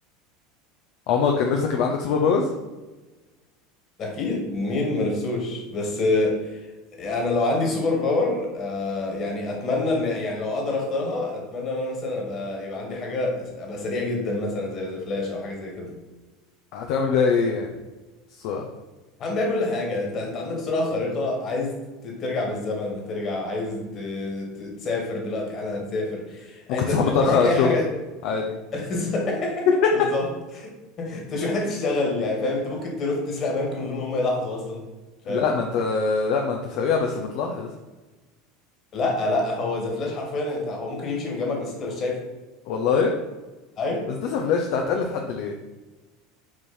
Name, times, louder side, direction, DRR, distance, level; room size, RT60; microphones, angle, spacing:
voice 1, 1.1-2.5 16.7-17.7 18.4-18.7 26.7-27.8 28.2-28.5 35.3-37.7 42.7-43.1 44.1-45.5, left 5 dB, 60° left, 2 dB, 0.7 m, -23 dB
voice 2, 4.0-6.7 7.0-15.9 19.2-21.8 22.0-27.9 28.7-29.7 29.9-30.3 30.5-30.7 31.0-34.9 35.3-35.5 38.9-42.2 43.8-44.1, left 2 dB, 40° left, 0 dB, 2.1 m, -27 dB
6.0 x 4.7 x 4.3 m, 1.2 s
hypercardioid pair, 80°, 0 cm